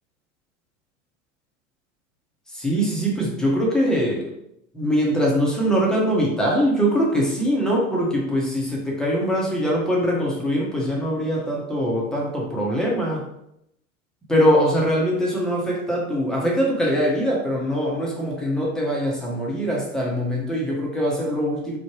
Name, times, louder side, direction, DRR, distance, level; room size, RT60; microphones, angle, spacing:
voice 1, 2.5-4.3 4.7-13.2 14.3-21.8, equal, ahead, -4 dB, 0.7 m, -22 dB
3.1 x 2.1 x 3.1 m, 0.78 s
figure-of-eight pair, 85°, 43 cm